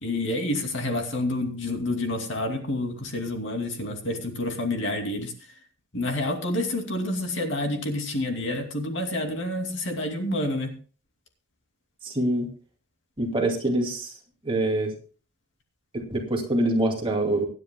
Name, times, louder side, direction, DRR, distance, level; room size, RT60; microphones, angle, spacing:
voice 1, 0.0-5.3 5.9-10.7, left 1 dB, 55° left, 3 dB, 2.6 m, -28 dB
voice 2, 12.0-12.5 13.2-14.1 14.4-14.9 15.9-17.5, right 1 dB, 25° right, 1 dB, 2.4 m, -25 dB
25.0 x 9.6 x 2.2 m, 0.38 s
head